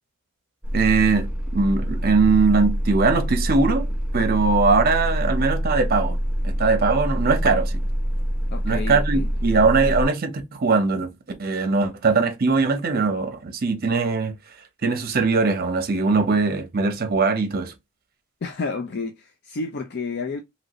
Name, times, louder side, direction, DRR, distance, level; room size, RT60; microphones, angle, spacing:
sound 1, 0.6-10.0, equal, 5° right, 0.8 m, -25 dB
voice 1, 0.7-3.9 4.1-6.2 6.4-7.7 8.6-11.1 11.4-14.3 14.8-17.7, right 4 dB, 45° right, 0.7 m, -21 dB
voice 2, 8.5-9.3 18.4-20.4, left 4 dB, 50° left, 0.5 m, -30 dB
3.0 x 2.6 x 2.9 m
head